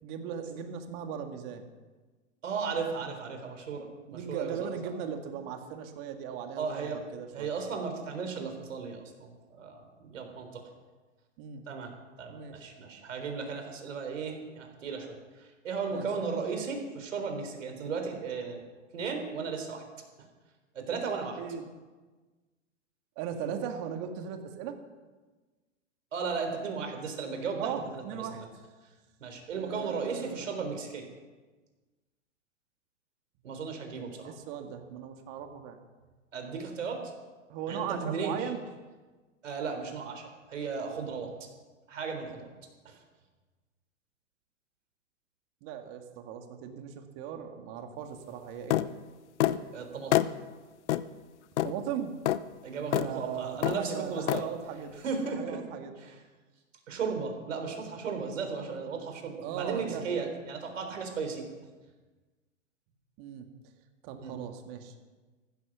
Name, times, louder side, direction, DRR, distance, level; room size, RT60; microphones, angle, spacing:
voice 1, 0.0-1.7 4.1-7.5 11.4-11.6 12.3-12.6 15.9-16.1 21.4-21.7 23.2-24.7 27.6-28.6 29.5-30.5 34.2-35.8 37.5-38.6 45.6-48.8 51.6-52.1 52.8-55.0 55.3-56.0 59.4-60.4 63.2-63.5 64.0-65.0, right 8 dB, 45° right, 5 dB, 2.2 m, -38 dB
voice 2, 2.4-4.5 6.6-7.0 7.3-10.6 11.7-11.9 12.2-18.6 18.9-19.8 20.7-21.4 26.1-28.5 29.2-31.0 33.4-34.3 36.3-37.0 37.7-38.5 39.4-41.3 41.9-42.5 42.8-43.0 49.7-50.2 52.6-54.4 55.0-55.6 56.0-56.2 56.9-61.4 64.2-64.4, right 5 dB, 75° right, 4 dB, 3.9 m, -35 dB
sound 1, 48.7-48.9 49.4-49.6 50.1-50.3 50.9-51.0 51.6-51.7 52.3-52.4 52.9-53.1 53.6-53.8 54.3-54.4, left 13 dB, 60° left, 0.8 m, -26 dB
15.0 x 12.5 x 6.2 m, 1.3 s
hypercardioid pair, 115°, 38 cm